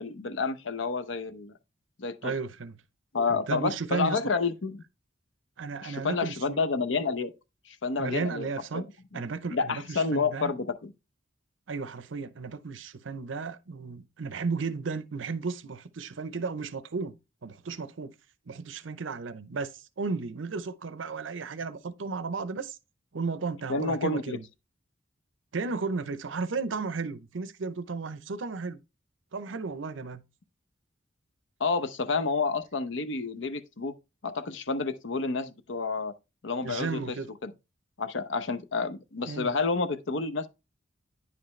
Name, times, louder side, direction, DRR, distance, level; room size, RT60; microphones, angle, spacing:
voice 1, 0.0-1.5 2.0-2.3 3.1-4.8 5.8-7.3 7.7-8.5 8.7-8.9 9.1-9.2 9.5-10.9 23.7-24.4 31.6-33.9 34.2-36.1 36.4-37.0 37.4-37.5 38.0-40.5, left 4 dB, 70° left, 0.7 m, -29 dB
voice 2, 2.2-2.7 3.3-4.2 5.6-6.6 8.0-8.8 9.1-10.5 11.7-17.1 17.4-18.1 18.5-22.8 23.1-24.4 25.5-28.8 29.3-30.2 36.6-37.3 39.3-39.5, right 4 dB, 80° right, 0.6 m, -34 dB
9.6 x 5.0 x 3.2 m
head